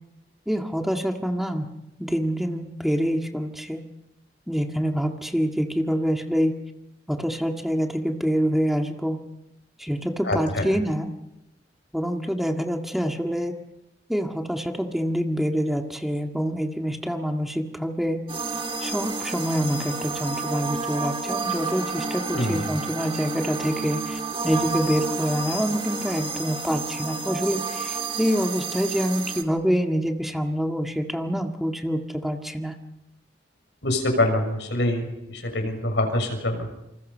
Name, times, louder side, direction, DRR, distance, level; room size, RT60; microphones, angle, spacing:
voice 1, 0.5-1.7 2.0-3.8 4.5-6.5 7.1-9.2 9.8-11.1 11.9-13.5 14.1-18.3 18.8-32.7, equal, ahead, 3 dB, 1.8 m, -26 dB
voice 2, 10.3-10.6 22.3-22.6 33.8-35.1 35.5-36.7, left 1 dB, 80° left, 4 dB, 6.4 m, -24 dB
sound 1, 18.3-29.4, right 4 dB, 30° right, 2.4 m, -30 dB
28.0 x 27.0 x 5.6 m, 0.92 s
head